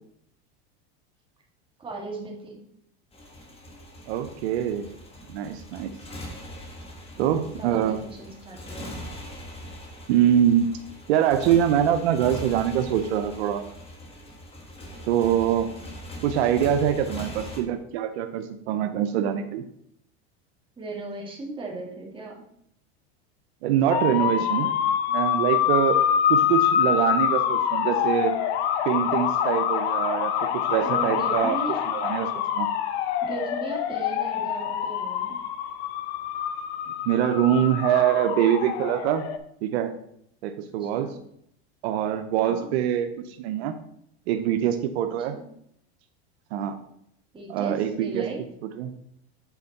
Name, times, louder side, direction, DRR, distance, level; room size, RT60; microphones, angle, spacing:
voice 1, 1.8-2.6 7.2-8.9 17.2-17.4 20.8-22.4 24.2-24.7 30.8-31.8 33.2-35.4 40.8-41.2 42.4-42.7 45.3-45.5 47.3-48.4, right 3 dB, 15° right, -1 dB, 1.8 m, -37 dB
Motorcycle, 3.1-17.6, equal, 20° left, 1.4 m, -41 dB
voice 2, 4.1-4.9 5.3-5.9 7.2-8.0 10.1-10.7 11.1-13.6 15.1-15.7 16.2-19.6 23.6-24.7 25.1-26.0 26.3-28.3 28.9-31.5 31.9-32.3 32.6-32.7 37.1-39.2 39.6-39.9 40.4-41.1 41.8-43.7 44.3-45.4 46.5-46.8 47.5-48.3 48.8-48.9, right 10 dB, 80° right, 8 dB, 0.7 m, -24 dB
sound 1, 23.9-39.4, left 9 dB, 75° left, 0.8 m, -25 dB
8.2 x 4.4 x 4.1 m, 0.71 s
supercardioid pair, 120°, 32 cm